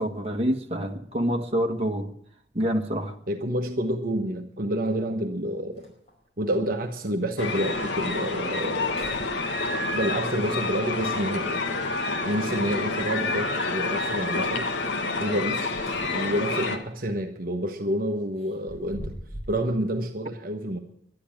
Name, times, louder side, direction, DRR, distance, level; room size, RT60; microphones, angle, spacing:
voice 1, 0.0-2.1 2.5-3.2, equal, 35° right, 2 dB, 1.4 m, -27 dB
sound 1, 3.1-3.2 4.9-5.0 5.4-5.5 5.7-6.3 6.9-7.0 7.5-7.6 8.0-8.4 8.8-9.9 12.0-12.7 15.4-16.5 16.8-17.1 18.3-19.7, equal, 35° left, 5.0 m, -43 dB
voice 2, 3.3-5.9 6.4-8.9 9.9-11.7 12.2-14.7 15.2-15.8 16.1-19.1 19.5-20.8, equal, 50° right, 4 dB, 1.2 m, -28 dB
sound 2, 7.4-16.8, left 3 dB, 75° left, 1.5 m, -28 dB
12.0 x 10.0 x 8.7 m, 0.66 s
head